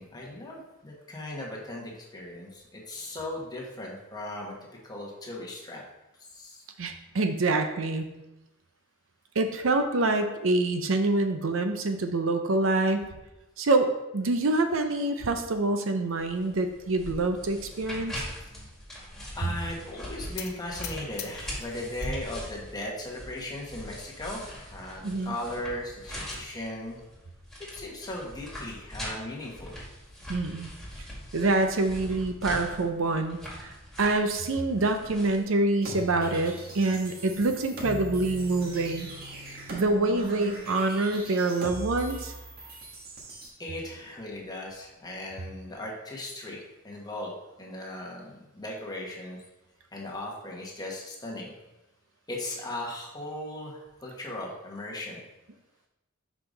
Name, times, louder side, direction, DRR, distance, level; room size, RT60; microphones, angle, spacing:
voice 1, 0.0-4.5 4.8-5.8 6.2-6.6 18.4-18.5 19.3-27.0 27.7-29.8 43.6-47.3 47.6-49.4 49.9-51.5 52.3-55.2, left 1 dB, 20° left, -3 dB, 1.3 m, -37 dB
voice 2, 6.8-8.1 9.4-13.1 13.6-13.9 14.1-18.2 25.0-25.3 30.3-30.7 31.3-39.1 39.7-42.3, right 2 dB, 75° right, 7 dB, 0.6 m, -26 dB
sound 1, 16.2-35.4, equal, ahead, 1.9 m, -42 dB
sound 2, 20.4-22.2 22.5-23.2 23.7-23.8 24.1-24.2 24.6-24.7 25.8-26.4, left 9 dB, 50° left, 0.6 m, -43 dB
sound 3, 35.8-43.5, right 1 dB, 50° right, 1.3 m, -40 dB
5.8 x 5.0 x 3.9 m, 0.98 s
head